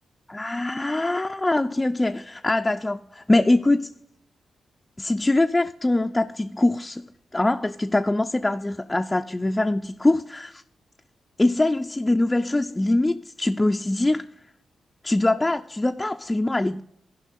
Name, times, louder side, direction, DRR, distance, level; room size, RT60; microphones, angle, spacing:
voice 1, 0.3-3.9 5.0-7.1 7.3-10.6 11.4-14.2 15.0-16.8, left 2 dB, 20° left, 0.5 m, -23 dB
14.5 x 5.4 x 4.1 m
supercardioid pair, 50°, 0 cm